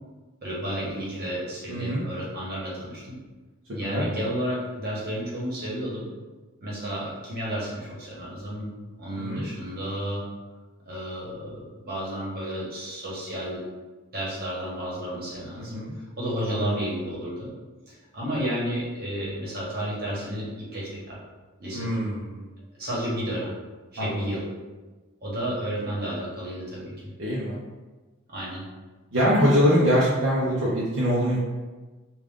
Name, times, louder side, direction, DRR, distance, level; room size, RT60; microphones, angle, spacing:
voice 1, 0.4-3.1 3.7-6.0 6.6-8.7 9.0-10.2 10.9-13.6 14.1-15.8 16.2-17.5 17.9-20.4 20.7-21.2 21.6-22.0 22.8-23.5 23.9-24.4 25.2-27.1 28.3-28.6, equal, 45° right, -6 dB, 1.2 m, -32 dB
voice 2, 1.7-2.0 3.8-4.0 9.2-9.5 15.6-15.9 16.5-16.8 21.7-22.4 24.0-24.3 27.2-27.6 29.1-31.4, equal, 60° right, -7 dB, 0.7 m, -24 dB
3.6 x 2.4 x 3.6 m, 1.3 s
head